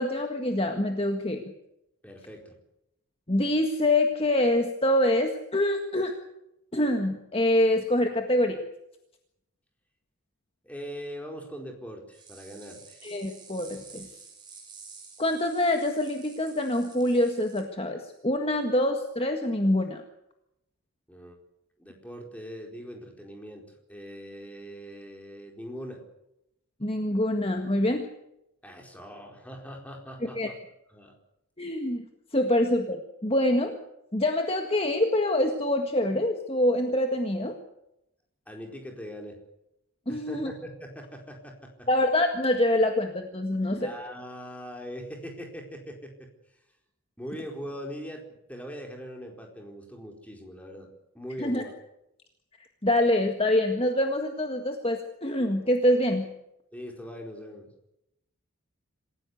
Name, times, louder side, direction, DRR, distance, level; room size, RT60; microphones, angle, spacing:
voice 1, 0.0-1.4 3.3-6.1 6.7-8.6 13.0-14.1 15.2-20.0 26.8-28.1 30.4-30.5 31.6-32.1 32.3-33.8 34.1-37.6 40.1-40.5 41.9-43.9 51.4-51.6 52.8-56.3, left 1 dB, 25° left, 4 dB, 1.7 m, -25 dB
voice 2, 2.0-2.6 10.6-13.0 21.1-21.4 21.8-26.0 28.6-30.6 30.9-31.1 38.5-39.4 40.1-41.9 43.8-46.6 47.2-51.7 56.7-57.7, equal, 5° left, 2 dB, 4.4 m, -41 dB
sound 1, 12.1-17.6, right 5 dB, 20° right, 6.3 m, -50 dB
27.0 x 16.0 x 8.2 m, 0.84 s
head